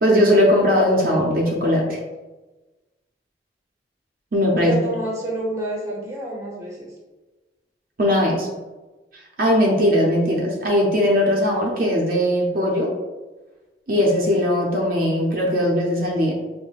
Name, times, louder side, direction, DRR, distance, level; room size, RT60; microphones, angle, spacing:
voice 1, 0.0-2.0 4.3-4.8 8.0-8.5 9.4-12.9 13.9-16.3, equal, 50° right, -2 dB, 0.6 m, -19 dB
voice 2, 4.6-6.9, right 1 dB, 15° right, -4 dB, 0.8 m, -28 dB
5.4 x 2.1 x 2.4 m, 1.2 s
head